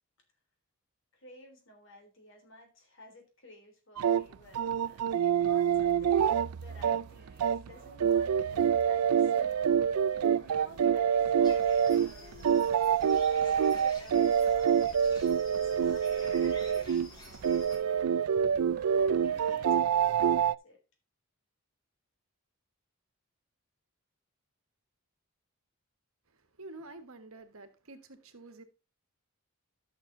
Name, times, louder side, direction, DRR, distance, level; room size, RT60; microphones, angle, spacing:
voice 1, 1.1-9.8 10.1-17.5 17.9-18.3 18.8-20.8, equal, 55° left, 3.3 m, -54 dB
sound 1, 4.0-7.7 8.0-17.1 17.3-20.6, right 8 dB, 85° right, 0.4 m, -26 dB
sound 2, 6.2-10.0 10.2-19.8, right 3 dB, 40° right, 1.7 m, -55 dB
sound 3, 11.4-17.8, left 1 dB, 20° left, 2.7 m, -50 dB
voice 2, 26.3-28.6, right 2 dB, 70° right, 1.5 m, -49 dB
13.5 x 6.6 x 2.6 m
head